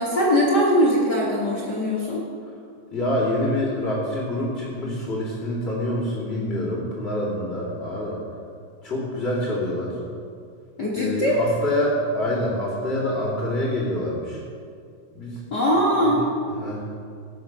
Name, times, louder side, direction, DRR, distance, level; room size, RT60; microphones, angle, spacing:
voice 1, 0.0-2.2 10.8-11.4 15.5-16.2, equal, 40° left, -5 dB, 1.7 m, -21 dB
voice 2, 2.9-8.2 8.8-10.0 10.9-14.4 15.1-15.4 16.0-16.3 16.6-16.8, left 1 dB, 20° left, -11 dB, 2.5 m, -26 dB
17.5 x 7.4 x 6.0 m, 2.3 s
omnidirectional pair, 3.9 m